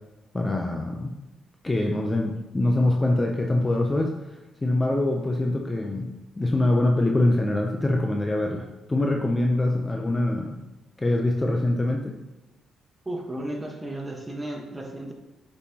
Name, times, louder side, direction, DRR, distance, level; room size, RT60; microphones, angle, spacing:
voice 1, 0.3-1.1 1.6-10.6 11.0-12.2, left 1 dB, 20° left, 1 dB, 0.6 m, -24 dB
voice 2, 13.0-15.1, right 1 dB, 15° right, 1 dB, 1.2 m, -34 dB
8.2 x 5.5 x 2.9 m, 1.0 s
cardioid pair, 90°, 0 cm